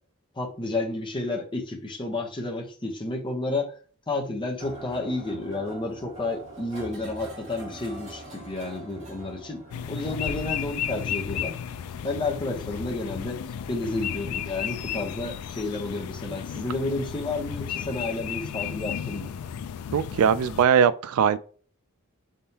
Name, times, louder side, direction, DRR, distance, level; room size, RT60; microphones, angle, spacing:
voice 1, 0.4-3.7 4.1-9.6 9.9-11.5 12.0-13.4 13.7-19.3, left 2 dB, 20° left, 0.8 m, -31 dB
sound 1, 4.6-17.9, right 1 dB, 30° right, 1.8 m, -46 dB
sound 2, 9.7-20.6, left 8 dB, 80° left, 0.3 m, -34 dB
voice 2, 19.9-21.4, right 7 dB, 70° right, 0.3 m, -20 dB
4.3 x 3.6 x 2.8 m
head